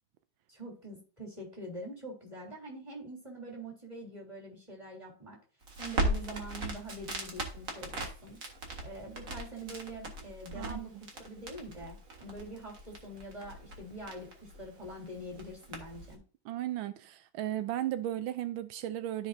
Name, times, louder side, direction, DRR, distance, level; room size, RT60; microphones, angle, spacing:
voice 1, 0.5-5.4 5.8-8.4 8.8-16.2, right 1 dB, 15° right, 3.3 m, -44 dB
Crackle, 5.6-16.1, right 1 dB, 45° right, 2.0 m, -39 dB
voice 2, 16.4-19.3, right 13 dB, 85° right, 1.4 m, -35 dB
14.0 x 5.1 x 2.7 m
omnidirectional pair, 2.2 m